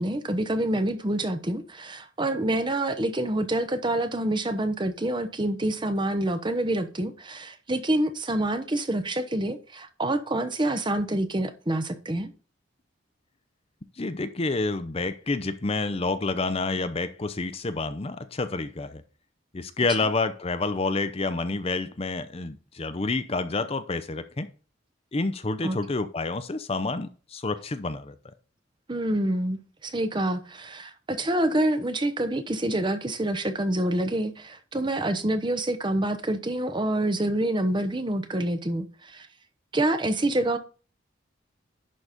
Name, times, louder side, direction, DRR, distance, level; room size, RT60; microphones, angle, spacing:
voice 1, 0.0-12.3 25.6-25.8 28.9-39.3 39.7-40.6, right 1 dB, 25° right, 0.8 m, -27 dB
voice 2, 14.0-19.0 19.5-24.5 25.1-28.1, left 3 dB, 30° left, 0.6 m, -28 dB
11.0 x 4.1 x 5.0 m
head